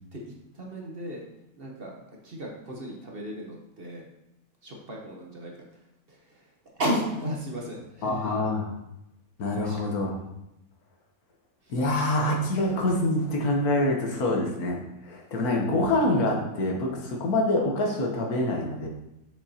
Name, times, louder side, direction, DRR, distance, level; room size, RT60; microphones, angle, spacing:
voice 1, 0.1-1.2 1.6-2.0 2.2-4.1 4.6-8.4 9.6-9.8 11.6-11.7, equal, 40° right, -1 dB, 1.1 m, -35 dB
voice 2, 8.0-8.7 9.4-10.1 11.7-18.9, left 1 dB, 75° left, 1 dB, 1.6 m, -26 dB
7.3 x 5.9 x 2.8 m, 0.89 s
omnidirectional pair, 1.6 m